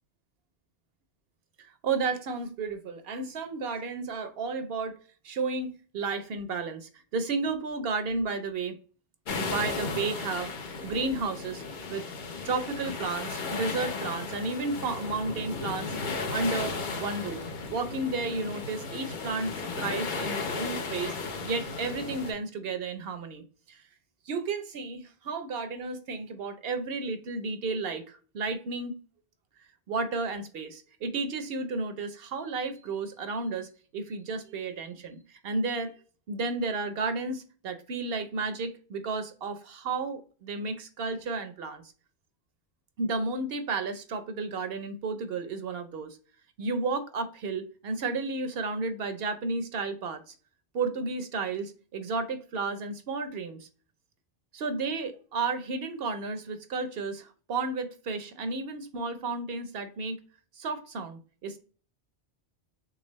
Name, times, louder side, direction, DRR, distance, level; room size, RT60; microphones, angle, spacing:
voice 1, 1.6-5.0 5.2-8.8 9.3-11.6 11.9-12.0 12.4-16.0 16.3-17.4 17.7-23.8 24.3-28.9 29.9-35.9 36.3-41.8 43.0-46.2 46.6-50.3 50.7-53.7 54.5-60.2 60.5-61.6, right 3 dB, 65° right, 9 dB, 0.8 m, -32 dB
sound 1, 9.3-22.3, left 4 dB, 50° left, 0.7 m, -35 dB
3.9 x 3.4 x 3.0 m, 0.38 s
omnidirectional pair, 1.2 m